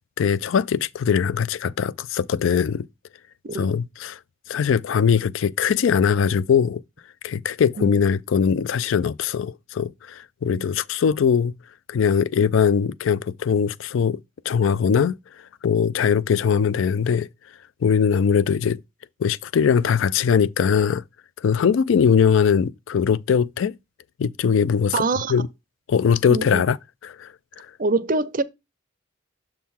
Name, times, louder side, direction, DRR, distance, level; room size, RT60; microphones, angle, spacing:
voice 1, 0.2-2.9 3.5-4.2 4.5-6.8 7.2-11.5 11.9-14.2 14.5-15.2 15.6-17.3 17.8-18.8 19.2-21.0 21.4-23.7 24.2-25.0 25.3-25.5 25.9-26.8 27.0-27.3 27.6-27.7, left 7 dB, 65° left, 0.3 m, -21 dB
voice 2, 24.9-25.3 26.3-26.6 27.8-28.4, right 3 dB, 40° right, 0.5 m, -24 dB
7.2 x 3.8 x 4.2 m
head